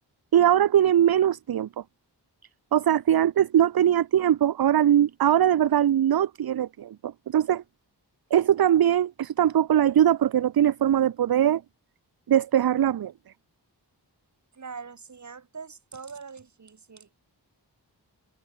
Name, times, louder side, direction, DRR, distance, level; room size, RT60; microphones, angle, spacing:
voice 1, 0.3-1.7 2.7-7.6 8.3-11.6 12.3-13.1, right 10 dB, 60° right, 0.6 m, -21 dB
voice 2, 14.5-17.1, right 5 dB, 40° right, 1.2 m, -42 dB
wide cardioid pair, 60°, 42 cm